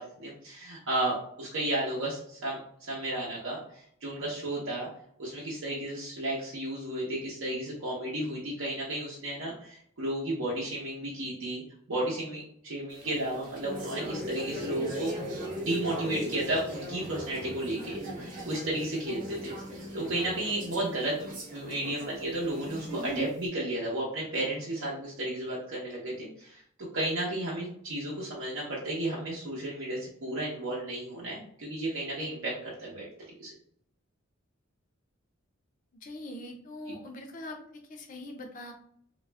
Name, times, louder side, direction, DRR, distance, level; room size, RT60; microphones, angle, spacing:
voice 1, 0.0-2.6 2.9-4.9 5.2-11.6 11.9-15.1 15.6-18.0 18.4-26.6 26.9-33.1 33.4-33.5, right 1 dB, 75° right, -6 dB, 0.7 m, -33 dB
sound 1, 12.9-23.4, equal, 40° right, 0.7 m, -38 dB
voice 2, 36.0-38.7, left 1 dB, 40° left, 4 dB, 0.4 m, -42 dB
2.3 x 2.0 x 3.3 m, 0.66 s
head